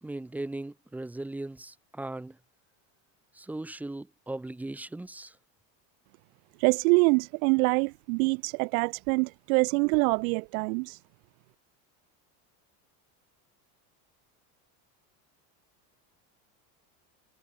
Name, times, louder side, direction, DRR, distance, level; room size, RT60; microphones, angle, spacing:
voice 1, 0.0-2.4 3.3-5.4, right 2 dB, 5° right, 0.6 m, -38 dB
voice 2, 6.6-11.0, right 31 dB, 85° right, 0.6 m, -25 dB
cardioid pair, 150°, 41 cm